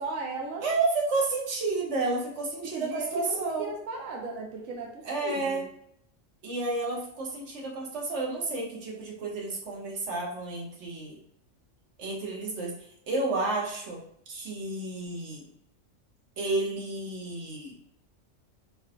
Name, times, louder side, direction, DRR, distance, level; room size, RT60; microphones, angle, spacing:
voice 1, 0.0-0.7 2.6-5.6, right 3 dB, 90° right, 1 dB, 1.1 m, -36 dB
voice 2, 0.6-3.7 5.0-5.6 6.4-11.2 12.0-12.7 13.1-14.0 14.3-15.5 16.4-17.7, right 3 dB, 60° right, -1 dB, 1.4 m, -31 dB
4.6 x 4.4 x 2.2 m, 0.71 s
omnidirectional pair, 1.4 m